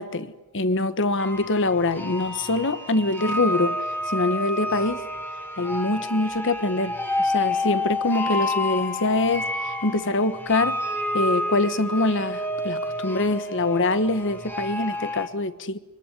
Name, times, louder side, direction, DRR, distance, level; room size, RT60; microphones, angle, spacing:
voice 1, 0.0-3.8 4.1-5.0 5.6-10.8 11.1-15.8, left 2 dB, 60° left, 1.4 m, -24 dB
sound 1, 1.2-15.3, left 1 dB, 10° left, 2.2 m, -29 dB
25.5 x 23.5 x 9.9 m
head